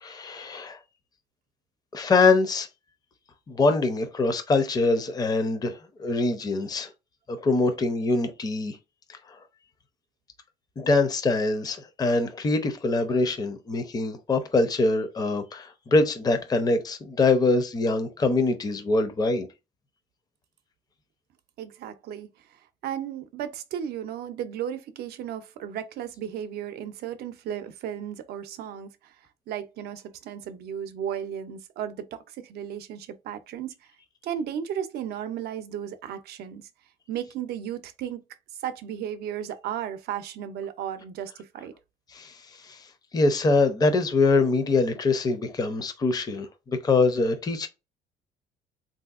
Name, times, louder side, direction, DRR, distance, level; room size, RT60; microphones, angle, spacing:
voice 1, 0.0-0.8 1.9-2.7 3.5-6.9 7.3-8.8 10.8-19.5 42.1-42.3 42.6-42.8 43.1-47.7, left 3 dB, 25° left, 0.5 m, -24 dB
voice 2, 21.6-22.3 22.8-29.1 29.5-33.7 34.2-36.7 37.1-38.2 38.6-41.7, right 9 dB, 70° right, 0.5 m, -34 dB
3.4 x 2.6 x 2.4 m
cardioid pair, 110°, 17 cm